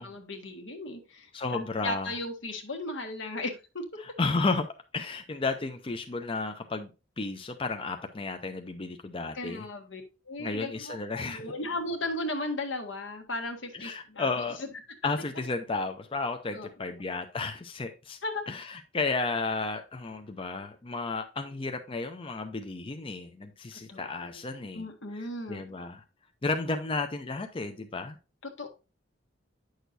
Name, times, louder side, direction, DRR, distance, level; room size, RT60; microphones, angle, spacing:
voice 1, 0.0-3.8 9.3-10.0 10.3-14.3 16.5-17.0 18.2-18.4 23.9-25.6 28.4-28.7, left 2 dB, 75° left, 1.5 m, -36 dB
voice 2, 1.3-2.1 4.0-4.7 4.9-6.9 7.2-9.7 10.4-11.4 13.7-14.6 15.0-18.2 18.5-24.8 25.1-26.0 26.4-28.2, left 3 dB, 30° left, 0.5 m, -33 dB
9.0 x 6.5 x 2.6 m
head